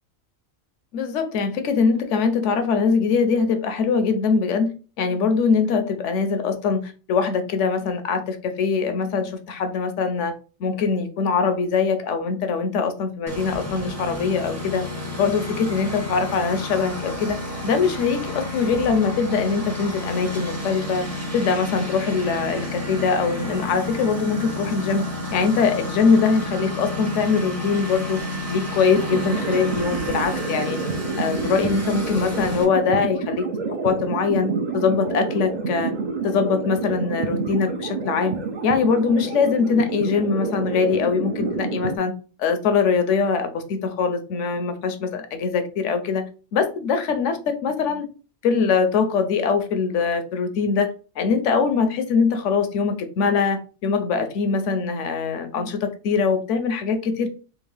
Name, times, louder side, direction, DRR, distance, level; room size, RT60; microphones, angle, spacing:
voice 1, 0.9-10.3 10.6-14.8 15.2-17.4 17.6-21.1 21.3-25.0 25.3-28.2 28.5-30.8 31.2-33.4 33.8-35.9 36.2-38.4 38.6-42.1 42.4-48.1 48.4-57.3, left 5 dB, 70° left, 0.9 m, -22 dB
Engine, 13.3-32.6, left 1 dB, 15° right, 0.7 m, -31 dB
sound 1, 28.9-42.0, right 4 dB, 55° right, 0.5 m, -28 dB
3.5 x 2.6 x 3.2 m
omnidirectional pair, 1.4 m